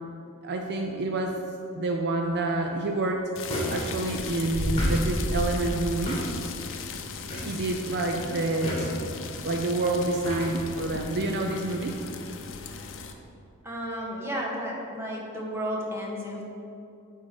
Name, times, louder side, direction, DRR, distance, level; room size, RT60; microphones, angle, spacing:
voice 1, 0.4-1.4 1.7-3.3 3.7-6.2 7.5-9.0 9.4-12.0, right 2 dB, 50° right, 2 dB, 0.5 m, -28 dB
sound 1, 2.3-2.4 3.5-3.8 4.1-4.2 4.5-6.3 6.7-6.8 7.3-7.5 7.8-8.1 8.6-9.2 10.3-10.6 10.9-11.0, equal, 25° left, 1.9 m, -30 dB
sound 2, 3.4-13.1, left 5 dB, 60° left, 0.7 m, -38 dB
voice 2, 13.6-16.4, equal, 10° right, -3 dB, 1.4 m, -33 dB
9.2 x 3.7 x 6.6 m, 2.7 s
head